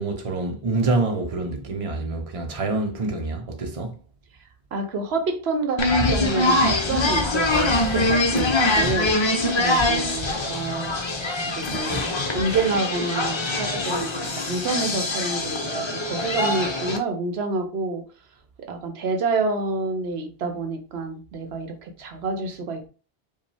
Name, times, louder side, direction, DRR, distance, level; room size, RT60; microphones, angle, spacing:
voice 1, 0.0-4.0, right 3 dB, 35° right, 0.8 m, -26 dB
voice 2, 4.7-10.9 11.5-18.0 18.7-22.9, right 3 dB, 85° right, 1.0 m, -28 dB
sound 1, 5.8-17.0, left 2 dB, 35° left, 0.6 m, -23 dB
5.0 x 2.4 x 3.3 m
omnidirectional pair, 1.0 m